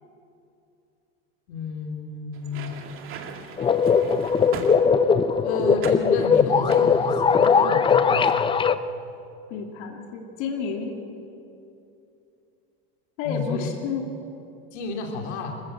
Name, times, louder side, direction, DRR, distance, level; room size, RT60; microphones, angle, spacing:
voice 1, 1.5-2.8 5.4-8.7 13.2-13.7 14.7-15.6, left 4 dB, 85° left, 2 dB, 2.9 m, -31 dB
sound 1, 2.3-5.3 5.8-6.1 6.7-7.9 8.1-8.4, right 6 dB, 40° right, 2.3 m, -39 dB
sound 2, 3.6-8.7, left 6 dB, 15° left, 0.5 m, -20 dB
voice 2, 9.5-10.9 13.2-14.0, left 5 dB, 65° left, 2 dB, 2.8 m, -30 dB
25.5 x 15.0 x 7.8 m, 2.7 s
supercardioid pair, 125°, 33 cm